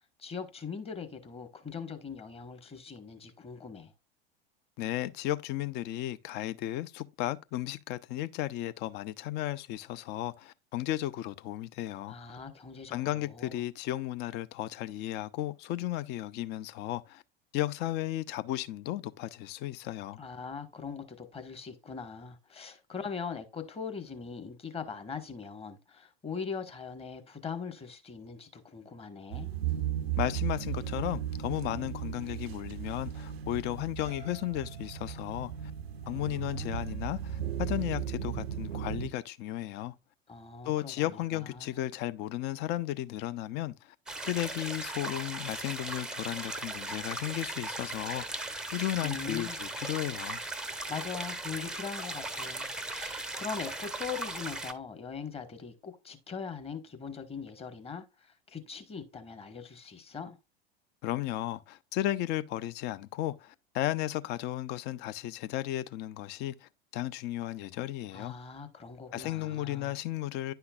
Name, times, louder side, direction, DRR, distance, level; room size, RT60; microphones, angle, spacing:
voice 1, 0.2-3.9 12.1-13.6 20.2-29.5 36.0-36.8 40.3-41.8 49.0-49.6 50.9-60.4 68.1-70.0, left 6 dB, 20° left, 1.2 m, -41 dB
voice 2, 4.8-12.2 12.9-17.2 17.5-20.2 30.2-35.5 36.1-39.9 40.6-43.9 44.3-48.4 48.7-50.4 61.0-68.3 69.1-70.5, left 14 dB, 35° left, 0.6 m, -34 dB
sound 1, 29.3-39.1, right 10 dB, 75° right, 0.6 m, -36 dB
sound 2, 44.1-54.7, right 2 dB, ahead, 0.7 m, -38 dB
10.0 x 5.7 x 2.3 m
figure-of-eight pair, 85°, 31 cm